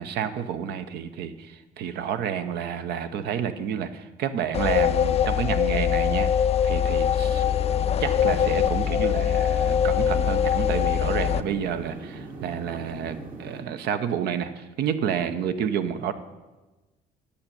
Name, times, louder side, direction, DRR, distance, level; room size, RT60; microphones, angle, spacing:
voice 1, 0.0-6.3 6.6-7.4 8.0-16.1, right 8 dB, 75° right, 10 dB, 0.8 m, -29 dB
sound 1, 4.5-11.4, left 9 dB, 40° left, 0.4 m, -23 dB
sound 2, 7.2-13.6, right 3 dB, 55° right, 1.7 m, -40 dB
8.7 x 6.7 x 8.6 m, 1.2 s
cardioid pair, 110°, 17 cm